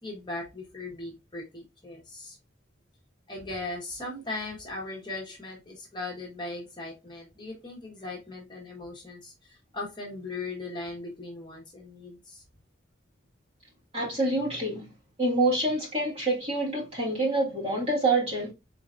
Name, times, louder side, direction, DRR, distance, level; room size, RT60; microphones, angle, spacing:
voice 1, 0.0-2.4 3.3-12.4, left 2 dB, 25° left, 1.1 m, -38 dB
voice 2, 13.9-14.9 15.2-18.5, right 2 dB, 30° right, 1.8 m, -26 dB
4.1 x 3.9 x 2.5 m
head